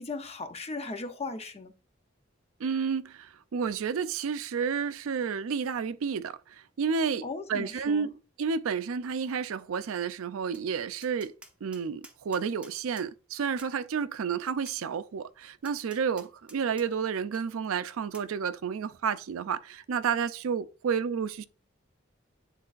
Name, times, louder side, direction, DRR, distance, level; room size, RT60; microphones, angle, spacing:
voice 1, 0.0-1.7 7.2-8.1, left 3 dB, 30° left, 0.7 m, -37 dB
voice 2, 2.6-11.3 11.6-21.4, right 6 dB, 80° right, 0.4 m, -31 dB
Tap, 10.5-10.7 11.0-13.1 13.6-13.7 14.7-14.8 15.6-16.9 17.3-17.4 18.1-18.3, right 2 dB, 5° right, 0.8 m, -51 dB
10.0 x 3.8 x 2.5 m
head